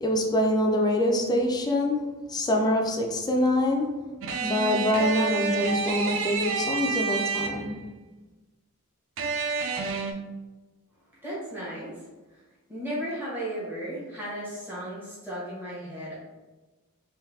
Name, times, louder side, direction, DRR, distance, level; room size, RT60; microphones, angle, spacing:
voice 1, 0.0-3.9 4.4-7.8, left 1 dB, 20° left, 1 dB, 0.4 m, -25 dB
sound 1, 4.2-7.9 9.2-10.1, right 4 dB, 60° right, 0.5 m, -29 dB
voice 2, 11.2-11.9 12.7-16.2, equal, 10° right, -9 dB, 1.2 m, -35 dB
3.8 x 2.7 x 2.7 m, 1.2 s
head